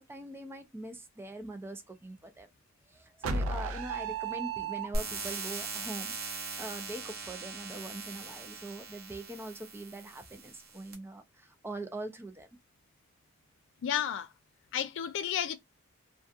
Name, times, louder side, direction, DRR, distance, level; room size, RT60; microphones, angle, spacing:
voice 1, 0.0-2.5 2.9-12.5, right 2 dB, 10° right, 0.4 m, -43 dB
sound 1, 3.2-5.4, right 4 dB, 85° right, 0.4 m, -34 dB
sound 2, 4.9-10.9, right 3 dB, 50° right, 0.7 m, -40 dB
voice 2, 13.8-14.3 14.7-15.6, left 9 dB, 65° left, 0.3 m, -32 dB
2.3 x 2.2 x 2.6 m
head